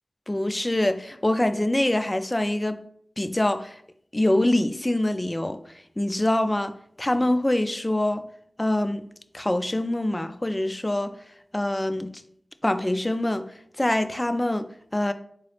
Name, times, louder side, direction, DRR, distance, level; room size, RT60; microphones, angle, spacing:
voice 1, 0.3-2.8 3.2-3.8 4.1-5.6 6.0-8.2 8.6-9.0 9.3-11.2 11.5-12.1 12.6-15.1, left 1 dB, 25° left, 0.3 m, -25 dB
4.0 x 2.9 x 3.1 m
cardioid pair, 40°, 0 cm